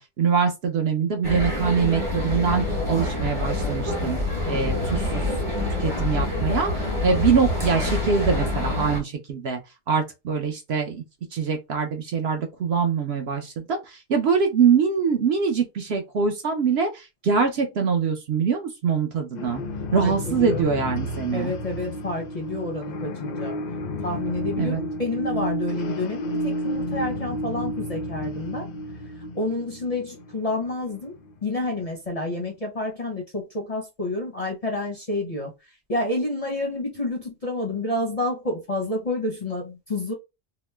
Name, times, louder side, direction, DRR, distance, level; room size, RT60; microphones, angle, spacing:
voice 1, 0.0-4.2 4.5-5.2 5.8-9.6 9.9-11.0 11.3-19.6 19.9-21.5 24.6-24.8, right 6 dB, 60° right, 0.7 m, -24 dB
sound 1, 1.2-9.0, left 2 dB, 25° right, 0.9 m, -26 dB
voice 2, 4.4-4.9 19.9-20.7 21.3-23.6 24.0-28.7 29.3-31.1 31.4-35.5 35.9-40.1, left 2 dB, 40° left, 0.6 m, -29 dB
sound 2, 19.3-31.9, left 1 dB, 80° left, 0.4 m, -31 dB
2.8 x 2.0 x 3.2 m
omnidirectional pair, 1.4 m